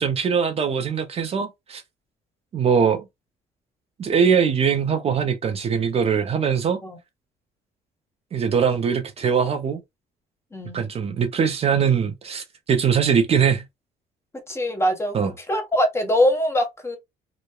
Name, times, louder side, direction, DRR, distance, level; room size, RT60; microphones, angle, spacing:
voice 1, 0.0-1.8 2.5-3.0 4.0-6.8 8.3-9.8 10.7-13.6 15.1-15.3, right 7 dB, 35° right, 0.5 m, -21 dB
voice 2, 10.5-10.9 14.5-15.2 15.5-17.0, equal, 15° left, 0.7 m, -22 dB
2.9 x 2.1 x 2.2 m
cardioid pair, 110°, 17 cm